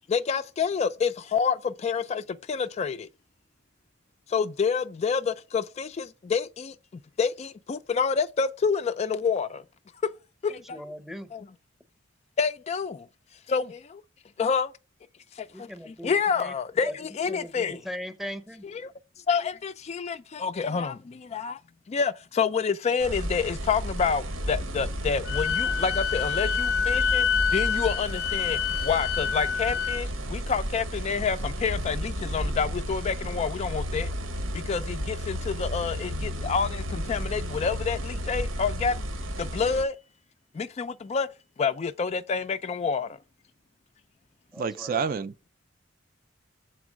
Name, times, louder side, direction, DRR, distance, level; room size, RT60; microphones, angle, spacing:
voice 1, 0.1-3.1 4.3-9.6 10.0-10.1 10.4-10.8 11.3-11.4 12.4-13.1 13.5-14.0 14.4-14.7 15.3-17.8 18.7-18.9 19.3-21.6 21.9-27.3 27.5-34.1 34.5-39.0 39.4-40.0 40.5-41.3 41.6-43.2, left 5 dB, 35° left, 0.3 m, -28 dB
voice 2, 10.7-11.3 15.5-16.5 16.8-16.9 17.3-18.6 44.5-45.0, equal, ahead, 0.7 m, -38 dB
sound 1, 23.0-39.8, equal, 90° right, 1.1 m, -33 dB
Wind instrument woodwind instrument, 25.3-30.0, left 7 dB, 90° left, 0.5 m, -27 dB
voice 3, 44.6-45.5, right 5 dB, 45° right, 0.4 m, -29 dB
7.0 x 4.4 x 6.1 m
head